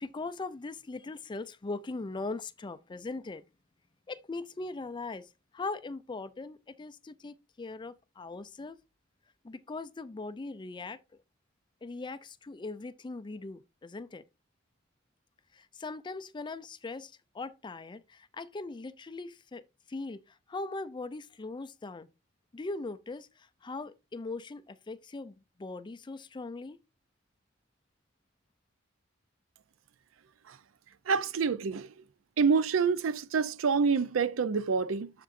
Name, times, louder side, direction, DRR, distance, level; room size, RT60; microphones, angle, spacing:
voice 1, 0.0-3.4 4.1-5.3 5.5-8.8 9.4-11.0 11.8-14.2 15.6-19.6 19.9-20.2 20.5-22.1 22.5-23.3 23.6-25.3 25.6-26.8, left 3 dB, 25° left, 0.4 m, -40 dB
voice 2, 31.1-31.9 32.4-35.1, right 5 dB, 85° right, 0.5 m, -27 dB
7.4 x 6.8 x 2.5 m
head